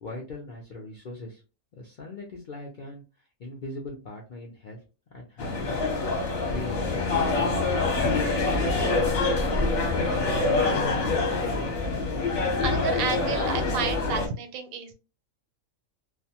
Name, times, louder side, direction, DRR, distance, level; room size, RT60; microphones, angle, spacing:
voice 1, 0.0-1.4 1.7-3.0 3.4-4.8 5.1-6.0 6.5-7.6, left 2 dB, 70° left, -1 dB, 0.4 m, -40 dB
sound 1, 5.4-14.3, left 3 dB, 55° left, 0.9 m, -25 dB
voice 2, 12.6-14.9, right 6 dB, 85° right, 8 dB, 1.0 m, -31 dB
2.4 x 2.2 x 2.7 m, 0.32 s
omnidirectional pair, 1.4 m